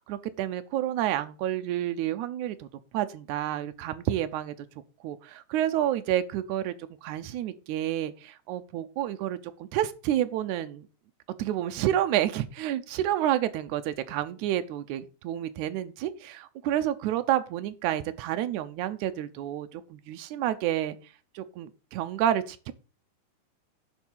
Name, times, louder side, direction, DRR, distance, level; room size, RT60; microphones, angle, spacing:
voice 1, 0.0-2.7 2.9-4.5 5.0-6.7 7.0-10.9 11.4-21.0 21.3-22.7, right 12 dB, 90° right, 10 dB, 1.7 m, -29 dB
10.5 x 3.8 x 7.3 m, 0.35 s
omnidirectional pair, 4.2 m